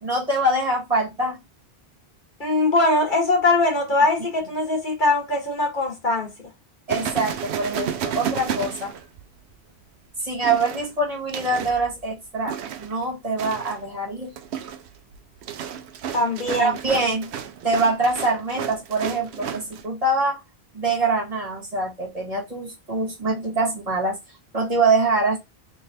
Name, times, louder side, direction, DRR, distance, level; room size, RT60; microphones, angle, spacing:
voice 1, 0.0-1.4 6.9-9.0 10.2-14.3 16.6-20.4 20.7-24.2 24.5-25.4, right 2 dB, 35° right, 1.8 m, -24 dB
voice 2, 2.4-6.5 16.1-16.7, left 2 dB, 50° left, 1.5 m, -21 dB
sound 1, 6.9-9.5 10.4-11.8 12.5-13.0 13.4-13.8 14.2-19.8, right 9 dB, 80° right, 0.9 m, -32 dB
3.5 x 3.1 x 2.7 m
omnidirectional pair, 1.1 m